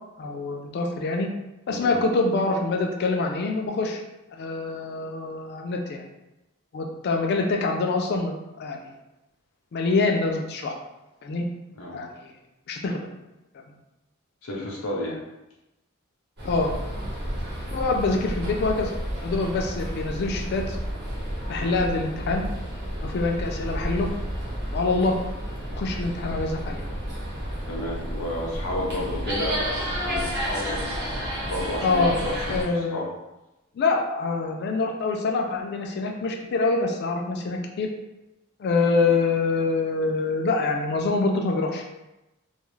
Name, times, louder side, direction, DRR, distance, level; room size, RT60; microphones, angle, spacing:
voice 1, 0.2-1.3 1.7-4.0 4.3-6.0 6.7-8.9 9.7-10.8 11.2-11.4 11.9-12.3 12.7-13.1 16.4-16.7 17.7-18.9 19.2-20.8 21.5-22.5 23.0-24.1 24.7-25.2 25.7-26.8 31.8-32.2 32.5-33.0 33.7-37.9 38.6-41.9, left 3 dB, 50° left, 2 dB, 0.3 m, -25 dB
voice 2, 14.4-15.2 21.6-21.8 27.7-33.1 39.0-39.1, left 1 dB, 85° left, -3 dB, 0.6 m, -32 dB
sound 1, 16.4-32.6, equal, 50° right, 0.9 m, -31 dB
2.4 x 2.3 x 3.1 m, 0.97 s
head